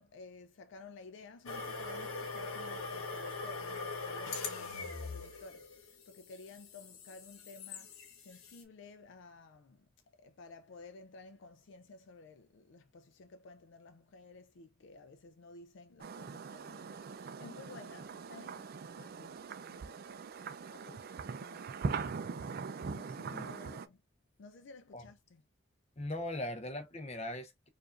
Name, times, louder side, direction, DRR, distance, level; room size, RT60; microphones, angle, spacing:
voice 1, 0.0-20.1 20.7-21.8 22.8-24.0 24.4-25.4, left 3 dB, 60° left, 0.4 m, -54 dB
sound 1, 1.5-8.6, left 4 dB, 90° left, 1.0 m, -42 dB
sound 2, 16.0-23.9, right 5 dB, 45° right, 0.4 m, -41 dB
voice 2, 23.2-23.8 24.9-25.0 26.0-27.7, left 1 dB, 30° left, 0.7 m, -40 dB
4.8 x 2.5 x 2.4 m
head